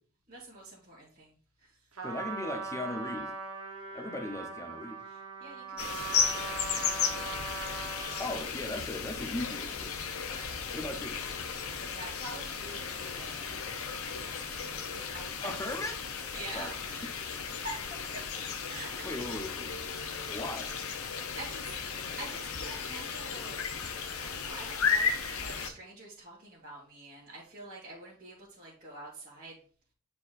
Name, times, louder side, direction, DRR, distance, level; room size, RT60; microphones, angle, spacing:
voice 1, 0.3-1.9 5.0-7.7 10.3-10.8 11.4-13.6 14.1-15.7 16.3-18.2 18.7-19.3 19.8-19.9 20.5-20.6 21.1-23.6 24.2-25.1 25.4-29.6, right 1 dB, 40° right, 1.9 m, -47 dB
voice 2, 2.0-3.3 3.9-5.0 8.2-9.9 10.7-11.2 15.4-15.9 16.5-16.7 19.0-19.9 20.3-20.7, left 1 dB, 15° left, 0.8 m, -38 dB
Trumpet, 2.0-8.6, right 5 dB, 65° right, 1.2 m, -40 dB
sound 1, 5.8-25.7, left 6 dB, 65° left, 0.8 m, -35 dB
9.2 x 4.2 x 2.6 m
head